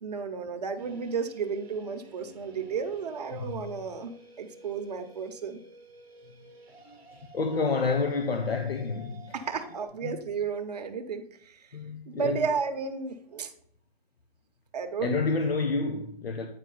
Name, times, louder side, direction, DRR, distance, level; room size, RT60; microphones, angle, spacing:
voice 1, 0.0-4.1 4.4-5.6 9.3-11.6 12.1-13.5 14.7-15.2, right 5 dB, 40° right, 0.8 m, -33 dB
sound 1, 0.8-9.9, right 3 dB, 5° right, 0.9 m, -52 dB
voice 2, 3.3-3.6 6.9-9.4 10.0-10.2 11.7-12.4 15.0-16.5, left 4 dB, 75° left, 0.9 m, -29 dB
9.2 x 4.9 x 3.9 m
hypercardioid pair, 160°, 30 cm